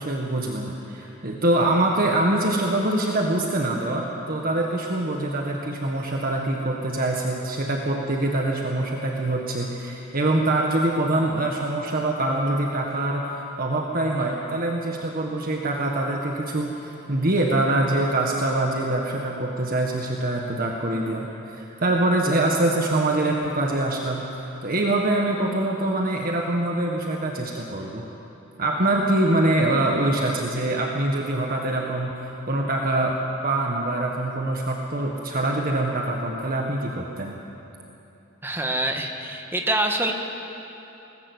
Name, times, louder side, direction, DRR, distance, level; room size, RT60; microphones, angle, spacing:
voice 1, 0.0-24.3 24.6-28.0 28.6-37.3, right 1 dB, 45° right, 0 dB, 1.7 m, -24 dB
voice 2, 38.4-40.1, right 1 dB, 10° right, 3 dB, 1.7 m, -25 dB
22.0 x 18.5 x 8.2 m, 3.0 s
head